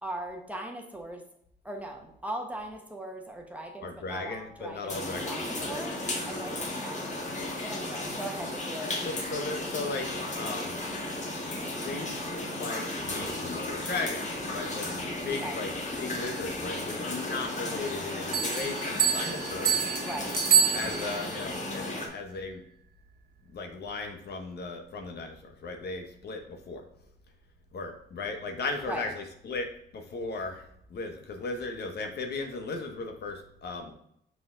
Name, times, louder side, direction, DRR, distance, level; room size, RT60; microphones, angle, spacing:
voice 1, 0.0-1.2 1.6-6.0 6.2-7.2 7.6-9.0 15.4-15.6 19.9-20.4 28.9-29.1, right 1 dB, 5° right, 2 dB, 1.2 m, -39 dB
voice 2, 3.8-6.1 7.4-7.6 9.0-10.8 11.8-15.7 16.0-19.9 20.7-22.6 23.5-26.8 27.7-33.9, left 3 dB, 55° left, 4 dB, 1.1 m, -37 dB
sound 1, 4.9-22.1, left 1 dB, 35° left, 1.8 m, -34 dB
sound 2, 18.3-21.4, right 7 dB, 55° right, 1.1 m, -27 dB
6.0 x 4.8 x 3.8 m, 0.71 s
cardioid pair, 90°, 20 cm